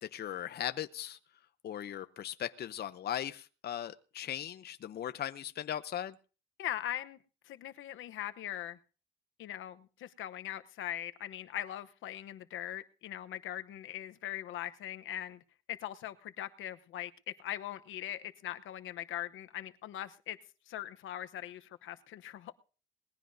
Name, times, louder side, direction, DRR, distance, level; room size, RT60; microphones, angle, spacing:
voice 1, 0.0-1.2 1.6-6.2, left 10 dB, 55° left, 0.7 m, -38 dB
voice 2, 6.6-7.2 7.4-8.8 9.4-15.4 15.7-17.1 17.4-20.4 20.7-22.5, left 12 dB, 80° left, 0.9 m, -41 dB
20.5 x 15.0 x 2.7 m
cardioid pair, 90°, 20 cm